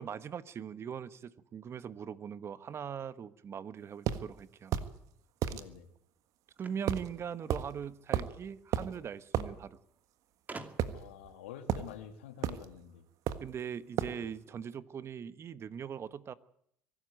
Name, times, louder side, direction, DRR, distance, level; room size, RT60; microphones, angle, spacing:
voice 1, 0.0-4.7 6.6-9.8 13.4-16.3, right 7 dB, 45° right, 15 dB, 1.2 m, -41 dB
sound 1, 4.1-4.2 4.7-4.9 5.4-5.6 6.9-7.1 7.5-7.7 8.1-8.4 8.7-8.9 9.3-9.5 10.8-11.3 11.7-11.9 12.4-12.7 13.3-13.5 14.0-14.2, right 10 dB, 60° right, 1.5 m, -32 dB
voice 2, 5.5-5.9 10.9-13.1 14.1-14.3, left 10 dB, 85° left, 8 dB, 2.2 m, -48 dB
sound 2, 6.6-8.0 9.1-9.2 9.4-9.5 10.5-11.1, right 3 dB, 25° right, 2.6 m, -48 dB
23.5 x 12.5 x 9.3 m, 0.71 s
hypercardioid pair, 70°, 6 cm